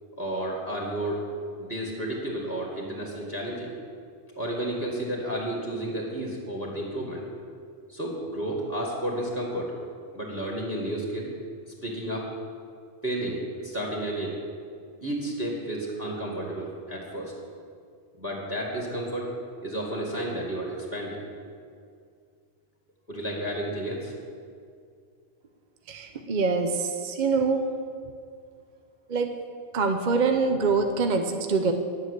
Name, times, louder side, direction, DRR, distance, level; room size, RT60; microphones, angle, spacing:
voice 1, 0.2-1.2 1.6-3.7 4.4-7.2 7.9-9.7 10.1-11.3 11.8-12.3 13.0-14.4 15.0-17.3 18.2-19.3 19.6-21.2 23.1-24.1, right 1 dB, 10° right, -2 dB, 2.0 m, -31 dB
voice 2, 25.9-27.6 29.1-29.3 29.7-31.7, right 4 dB, 45° right, 5 dB, 0.8 m, -24 dB
10.5 x 7.9 x 8.1 m, 2.2 s
omnidirectional pair, 1.3 m